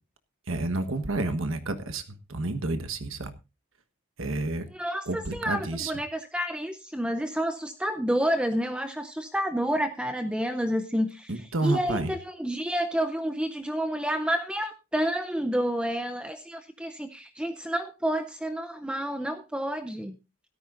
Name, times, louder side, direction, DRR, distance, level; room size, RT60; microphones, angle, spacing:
voice 1, 0.5-3.3 4.2-4.7 5.1-5.9 11.3-12.1, right 2 dB, 70° right, 9 dB, 1.4 m, -30 dB
voice 2, 4.7-20.2, equal, 5° right, 7 dB, 0.6 m, -29 dB
17.0 x 13.5 x 2.6 m, 0.28 s
head